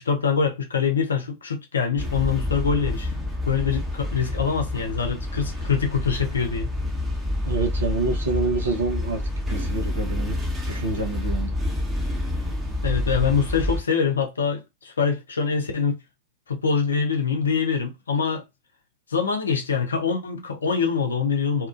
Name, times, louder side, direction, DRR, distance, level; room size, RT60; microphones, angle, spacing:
voice 1, 0.0-3.1 3.5-6.7 12.8-16.0 16.5-18.4 19.1-21.7, left 6 dB, 70° left, 0.6 m, -24 dB
sound 1, 2.0-13.8, left 1 dB, 10° right, 0.9 m, -28 dB
voice 2, 7.4-9.2 9.5-10.4 10.6-11.5, right 3 dB, 70° right, 0.9 m, -27 dB
2.8 x 2.4 x 2.4 m
figure-of-eight pair, 90°, 0 cm